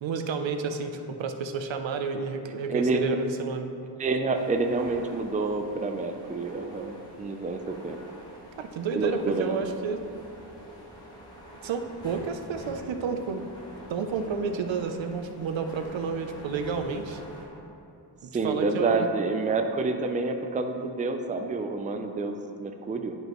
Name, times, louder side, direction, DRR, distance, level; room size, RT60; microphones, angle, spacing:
voice 1, 0.0-3.7 8.6-10.0 11.6-13.4 13.9-17.2 18.2-19.1, right 5 dB, 90° right, 7 dB, 0.6 m, -31 dB
voice 2, 2.7-3.2 4.0-8.0 8.9-9.6 18.3-23.2, right 3 dB, 20° right, 5 dB, 0.4 m, -28 dB
sound 1, 4.3-17.4, equal, 10° left, 1.3 m, -46 dB
11.0 x 5.4 x 3.0 m, 2.7 s
wide cardioid pair, 120°, 44 cm